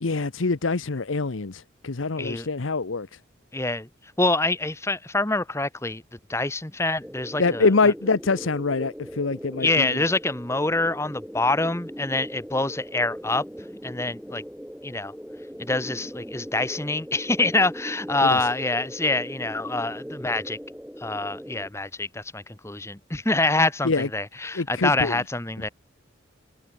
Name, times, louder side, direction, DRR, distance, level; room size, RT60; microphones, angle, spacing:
voice 1, 0.0-3.1 7.4-10.0 18.2-18.4 23.8-24.1 24.5-25.2, left 3 dB, 85° left, 0.9 m, -24 dB
voice 2, 2.2-2.5 3.5-3.9 4.2-6.0 6.3-7.7 9.6-13.4 13.8-14.4 14.8-15.1 15.6-20.6 21.0-25.7, left 2 dB, 15° left, 1.2 m, -25 dB
sound 1, 7.0-21.7, equal, 5° right, 6.5 m, -39 dB
head